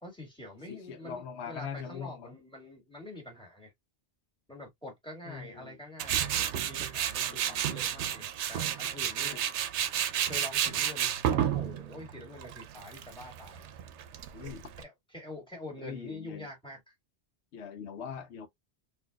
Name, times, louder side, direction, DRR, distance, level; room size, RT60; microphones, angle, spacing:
voice 1, 0.0-3.7 4.5-9.4 10.2-13.7 14.8-16.9, left 1 dB, 5° left, 1.8 m, -46 dB
voice 2, 0.7-2.3 5.2-5.8 7.2-7.8 9.2-9.4 14.3-14.7 15.8-16.5 17.5-18.5, left 7 dB, 80° left, 0.9 m, -42 dB
Tools, 6.0-14.8, right 10 dB, 90° right, 0.9 m, -31 dB
4.0 x 2.6 x 2.2 m
omnidirectional pair, 1.1 m